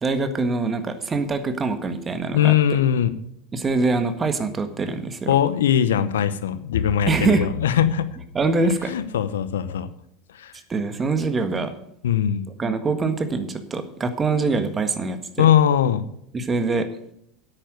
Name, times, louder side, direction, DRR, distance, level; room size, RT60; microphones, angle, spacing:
voice 1, 0.0-2.5 3.5-5.3 7.1-7.5 8.3-8.9 10.7-11.7 12.6-15.4 16.3-16.9, right 3 dB, 25° right, 8 dB, 1.6 m, -24 dB
voice 2, 2.3-3.1 5.3-8.1 8.6-9.9 10.3-10.6 12.0-12.5 15.4-16.0, left 9 dB, 80° left, 13 dB, 0.8 m, -20 dB
9.8 x 8.8 x 6.5 m, 0.72 s
hypercardioid pair, 80°, 0 cm